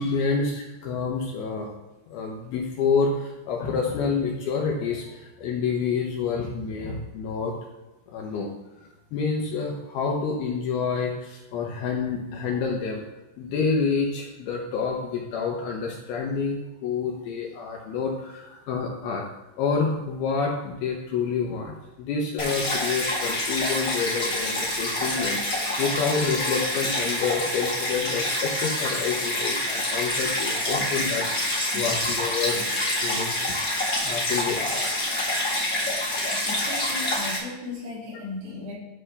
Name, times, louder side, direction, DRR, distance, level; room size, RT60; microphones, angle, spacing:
voice 1, 0.0-1.7 2.1-7.5 8.1-8.5 8.8-13.0 13.4-19.3 19.6-32.6 33.0-33.4 34.0-35.0, left 5 dB, 75° left, 0 dB, 2.4 m, -28 dB
Stream, 22.4-37.4, left 1 dB, 50° left, 1.0 m, -27 dB
voice 2, 36.3-38.7, left 3 dB, 80° right, -6 dB, 5.0 m, -36 dB
12.0 x 5.4 x 3.3 m, 1.1 s
omnidirectional pair, 5.2 m